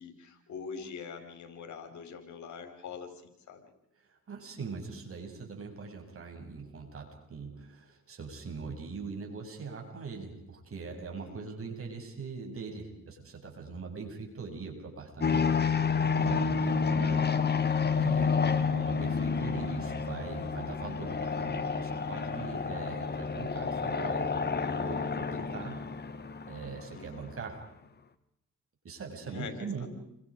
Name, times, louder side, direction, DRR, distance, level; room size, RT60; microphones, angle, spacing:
voice 1, 0.0-3.7 11.2-11.5 26.9-27.4 29.2-29.9, left 5 dB, 70° left, 6 dB, 5.4 m, -44 dB
voice 2, 4.1-17.3 17.9-25.8 26.5-27.6 28.8-29.9, right 4 dB, 45° right, 3 dB, 7.7 m, -41 dB
sound 1, 15.2-27.3, left 5 dB, 35° left, 2.1 m, -30 dB
30.0 x 24.5 x 5.2 m, 0.77 s
cardioid pair, 90°, 30 cm